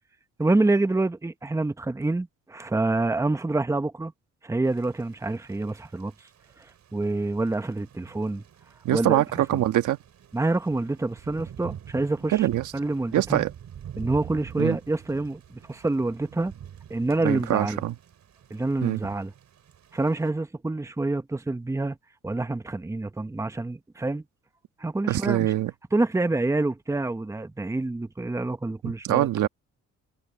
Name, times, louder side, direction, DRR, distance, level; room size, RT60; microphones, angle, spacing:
voice 1, 0.4-4.1 4.4-6.1 6.6-8.4 8.9-9.6 10.3-12.5 12.7-13.4 14.0-16.5 16.9-17.8 18.5-19.3 19.9-22.0 22.2-24.2 24.8-25.5 25.9-29.5, right 2 dB, 10° right, 1.0 m, -27 dB
Thunder / Rain, 4.6-20.3, right 9 dB, 65° right, 3.5 m, -46 dB
voice 2, 8.8-10.0 12.3-12.7 13.1-13.5 14.6-14.8 17.2-17.9 18.8-19.0 25.1-25.7 28.8-29.5, right 14 dB, 80° right, 1.4 m, -24 dB
cardioid pair, 90°, 30 cm